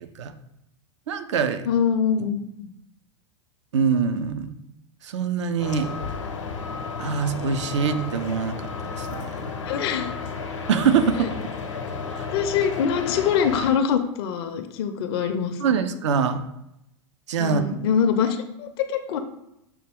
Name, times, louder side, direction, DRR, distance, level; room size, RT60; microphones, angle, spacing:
voice 1, 0.0-0.3 1.1-1.7 3.7-4.5 5.0-5.9 7.0-8.7 9.0-9.5 10.7-11.3 12.2-12.3 15.6-16.4 17.3-17.6, right 6 dB, 75° right, 10 dB, 0.4 m, -24 dB
voice 2, 1.7-2.7 9.7-10.1 12.3-15.6 17.4-19.2, left 7 dB, 55° left, 9 dB, 0.5 m, -24 dB
sound 1, 5.6-13.7, left 5 dB, 85° left, 0.8 m, -33 dB
6.1 x 2.2 x 3.4 m, 0.83 s
hypercardioid pair, 95°, 15 cm